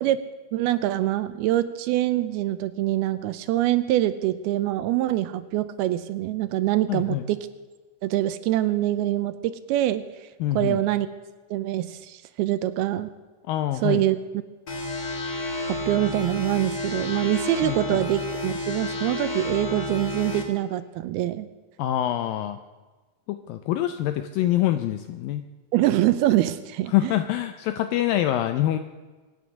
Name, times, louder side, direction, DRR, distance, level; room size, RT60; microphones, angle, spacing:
voice 1, 0.5-7.4 8.0-10.0 10.5-11.1 11.5-13.1 13.8-14.2 15.9-21.5 25.7-27.1, right 14 dB, 80° right, 13 dB, 2.5 m, -24 dB
voice 2, 6.9-7.3 10.4-10.8 13.5-14.0 17.6-18.0 21.8-22.6 23.3-25.4 26.9-28.8, left 13 dB, 80° left, 9 dB, 2.0 m, -25 dB
sound 1, 14.7-20.4, left 2 dB, 35° left, 1.6 m, -30 dB
24.0 x 9.5 x 6.3 m, 1.3 s
omnidirectional pair, 4.7 m